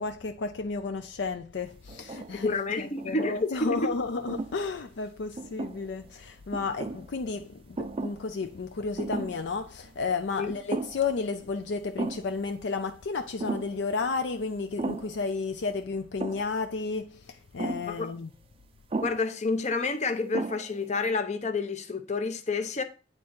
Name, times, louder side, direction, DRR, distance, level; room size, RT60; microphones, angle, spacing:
voice 1, 0.0-18.3, left 4 dB, 65° left, 0.5 m, -32 dB
sound 1, 1.9-2.5 3.0-3.7 4.3-4.6 5.4-6.1 6.5-7.1 7.8-8.3 8.5-8.6 9.0-9.5 9.8-9.9 10.5-11.2 11.4-11.5 12.0-12.4 13.4-13.8 14.8-15.2 16.2-16.6 17.6-18.0 18.9-19.3 19.9-20.0 20.3-20.8, right 3 dB, 30° right, 0.4 m, -35 dB
voice 2, 2.4-4.0 10.4-10.5 17.9-18.1 19.0-22.8, left 3 dB, 40° left, 0.7 m, -29 dB
8.9 x 3.7 x 4.3 m
head